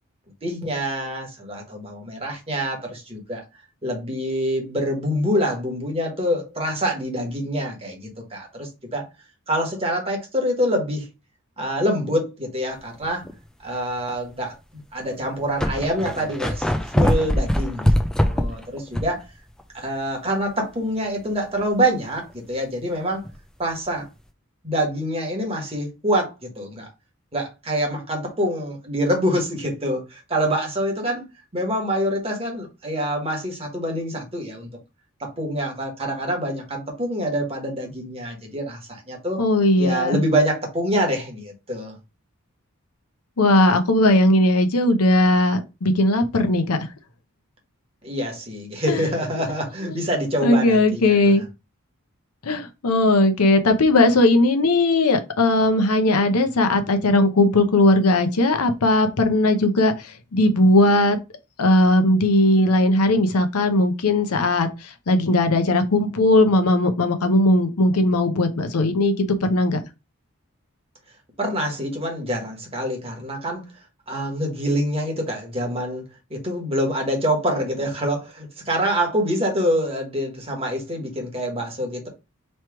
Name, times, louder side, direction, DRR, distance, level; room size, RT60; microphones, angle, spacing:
voice 1, 0.4-3.4 3.8-9.1 9.5-11.1 11.6-13.2 13.6-14.5 14.9-17.8 18.2-19.2 19.7-23.2 23.6-24.1 24.6-26.9 27.3-31.2 31.5-34.7 35.2-39.4 39.8-41.9 48.0-51.3 71.4-73.6 74.1-76.0 76.3-82.1, equal, 25° right, 1.3 m, -25 dB
sound 1, 13.0-13.3 14.0-14.1 15.0-15.1 15.2-19.2 19.6-19.7 23.2-23.4, equal, 5° left, 0.3 m, -22 dB
voice 2, 39.4-40.2 43.4-46.9 48.9-49.1 49.9-50.0 50.4-51.4 52.4-61.2 61.6-69.1 69.4-69.8, left 1 dB, 90° left, 0.7 m, -18 dB
3.2 x 3.0 x 4.6 m
head